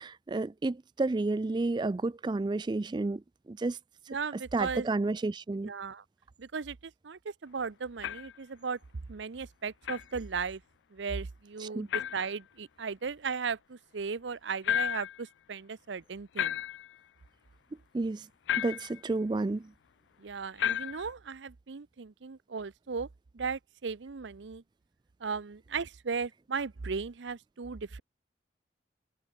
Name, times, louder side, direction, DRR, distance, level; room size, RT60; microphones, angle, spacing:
voice 1, 0.0-3.2 3.5-3.8 4.5-5.7 11.6-11.9 17.9-18.2 18.6-19.6, right 2 dB, 25° right, 0.3 m, -31 dB
voice 2, 4.1-4.9 5.6-6.0 6.4-8.8 9.1-10.6 10.9-16.6 20.2-23.1 23.3-24.6 25.2-28.0, right 5 dB, 80° right, 0.7 m, -36 dB
sound 1, 8.0-8.4 9.8-10.1 11.9-12.3 14.6-15.2 16.4-17.0 18.5-19.0 20.6-21.1, left 10 dB, 75° left, 0.3 m, -32 dB
head